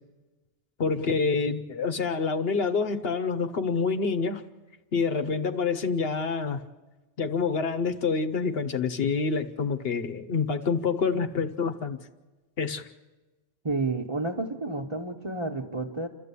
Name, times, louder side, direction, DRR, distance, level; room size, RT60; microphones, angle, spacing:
voice 1, 0.8-4.4 4.9-6.6 7.2-12.0 12.6-12.9, left 5 dB, 70° left, 8 dB, 1.1 m, -27 dB
voice 2, 13.6-16.1, right 3 dB, 30° right, -2 dB, 1.1 m, -30 dB
29.0 x 12.5 x 8.3 m, 1.2 s
omnidirectional pair, 1.1 m